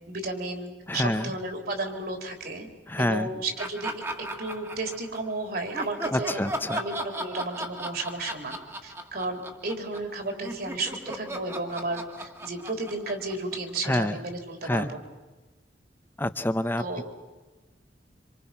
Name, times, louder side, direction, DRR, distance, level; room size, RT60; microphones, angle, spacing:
voice 1, 0.1-2.7 3.0-3.9 4.4-6.4 6.8-8.6 8.8-15.0 16.8-17.0, right 2 dB, 55° right, 4 dB, 3.9 m, -33 dB
voice 2, 0.9-1.3 2.9-3.3 6.1-6.8 13.8-14.2 14.6-14.9 16.2-17.0, left 1 dB, 10° left, 11 dB, 0.8 m, -27 dB
Laughter, 3.6-5.3 5.7-10.1 10.4-14.0, right 1 dB, 15° right, 1.9 m, -37 dB
27.0 x 26.5 x 5.9 m, 1.2 s
head